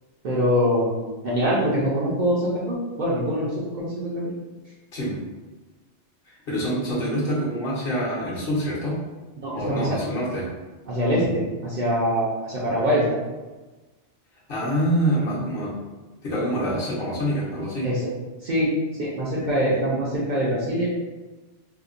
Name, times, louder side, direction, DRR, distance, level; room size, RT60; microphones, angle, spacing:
voice 1, 0.2-4.2 9.4-10.0 10.9-13.0 17.8-18.0 18.4-18.7 19.0-20.9, equal, 55° right, -6 dB, 0.6 m, -24 dB
voice 2, 6.5-9.0 9.5-10.5 14.5-15.7 16.2-17.9, equal, 60° left, -6 dB, 1.0 m, -25 dB
2.7 x 2.1 x 2.5 m, 1.2 s
omnidirectional pair, 1.1 m